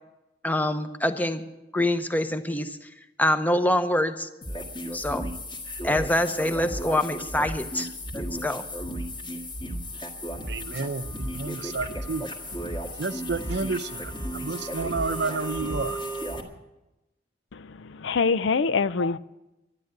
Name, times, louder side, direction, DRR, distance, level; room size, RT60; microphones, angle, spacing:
voice 1, 0.4-1.4 1.7-2.8 3.2-4.3 4.9-5.3 5.8-8.6, left 1 dB, 10° left, 0.8 m, -25 dB
sound 1, 4.4-16.4, equal, 25° left, 1.8 m, -34 dB
voice 2, 10.5-12.3 13.0-16.0, right 4 dB, 65° right, 0.7 m, -31 dB
voice 3, 17.5-19.2, left 4 dB, 80° left, 0.5 m, -25 dB
12.0 x 11.0 x 9.0 m
head